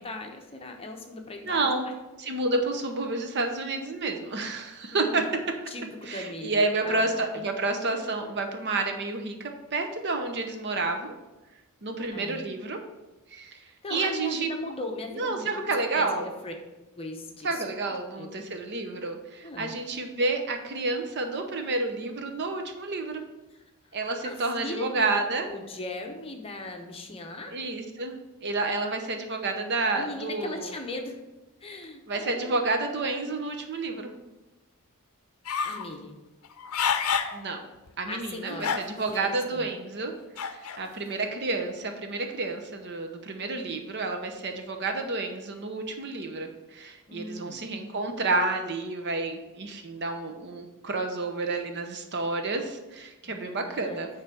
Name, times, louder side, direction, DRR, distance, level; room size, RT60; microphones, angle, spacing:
voice 1, 0.0-1.9 2.2-2.3 4.9-5.2 5.7-7.1 7.4-7.5 12.1-12.4 13.6-16.5 17.0-18.4 19.4-19.8 23.5-24.0 24.2-25.1 25.4-27.6 29.9-31.2 31.6-32.7 35.6-36.1 38.1-38.8 39.1-39.7 47.1-47.7 53.2-54.0, left 2 dB, 25° left, 3 dB, 0.8 m, -39 dB
voice 2, 1.4-1.9 2.2-5.2 6.1-11.1 11.8-12.8 13.3-14.5 15.2-16.3 17.4-23.2 23.9-25.5 27.5-30.7 32.1-34.1 37.3-37.7 38.0-40.1 40.4-54.1, right 3 dB, 50° right, 5 dB, 0.7 m, -30 dB
sound 1, 35.5-35.9 36.4-37.4 37.9-38.0 38.6-39.2 40.4-40.8, left 6 dB, 70° left, 0.6 m, -28 dB
9.3 x 3.3 x 5.9 m, 1.1 s
head